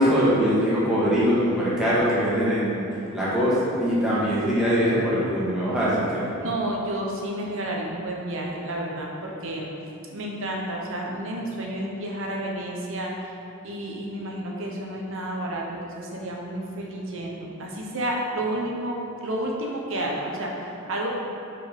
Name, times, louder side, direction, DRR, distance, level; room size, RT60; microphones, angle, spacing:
voice 1, 0.0-2.8 3.1-6.3, equal, 5° right, -10 dB, 1.4 m, -22 dB
voice 2, 6.4-9.7 10.1-13.1 13.6-21.1, right 1 dB, 65° right, -1 dB, 1.0 m, -31 dB
5.0 x 5.0 x 5.2 m, 2.8 s
head